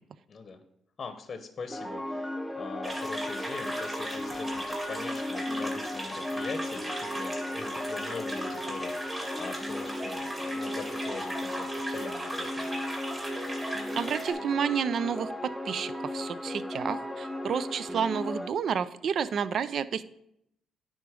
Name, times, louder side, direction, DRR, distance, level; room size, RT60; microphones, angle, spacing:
voice 1, 0.3-0.6 1.0-12.8, left 4 dB, 40° left, 8 dB, 0.8 m, -42 dB
sound 1, 1.7-18.5, left 1 dB, ahead, 0.6 m, -35 dB
sound 2, 2.8-14.3, right 1 dB, 20° right, 2.3 m, -38 dB
voice 2, 13.9-20.0, right 7 dB, 60° right, 15 dB, 0.4 m, -30 dB
9.6 x 3.8 x 5.0 m, 0.75 s
cardioid pair, 90°, 0 cm